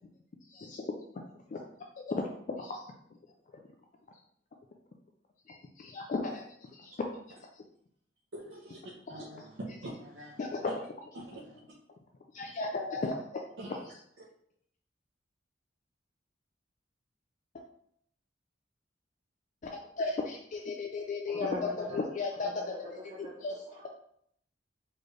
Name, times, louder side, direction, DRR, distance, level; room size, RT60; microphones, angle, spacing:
voice 1, 2.5-2.8 5.8-6.4 6.7-6.9 10.4-10.5 12.3-13.1 19.7-21.5 21.9-22.5 23.4-23.5, left 3 dB, 45° left, 1 dB, 0.4 m, -34 dB
voice 2, 8.3-8.8 9.1-10.9 11.1-11.6 12.3-12.5 13.6-13.9, right 1 dB, 80° right, -6 dB, 0.9 m, -45 dB
voice 3, 21.3-22.0 22.3-23.9, left 1 dB, 30° right, -5 dB, 0.7 m, -43 dB
4.2 x 3.2 x 3.2 m, 0.68 s
head